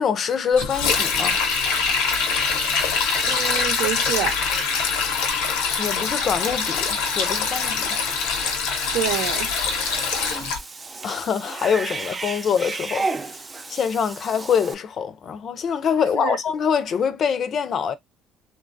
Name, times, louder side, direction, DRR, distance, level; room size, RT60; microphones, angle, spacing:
voice 1, 0.0-1.4 5.8-7.9 11.0-13.4 13.7-17.9, left 7 dB, 50° left, 0.5 m, -24 dB
Sink (filling or washing), 0.5-10.6, left 5 dB, 90° left, 0.7 m, -23 dB
voice 2, 3.3-4.3 8.9-9.5 16.0-16.4, right 10 dB, 85° right, 0.7 m, -27 dB
Cat / Bathtub (filling or washing), 8.7-14.7, right 3 dB, 25° right, 0.5 m, -33 dB
2.9 x 2.2 x 2.5 m
supercardioid pair, 90°, 0 cm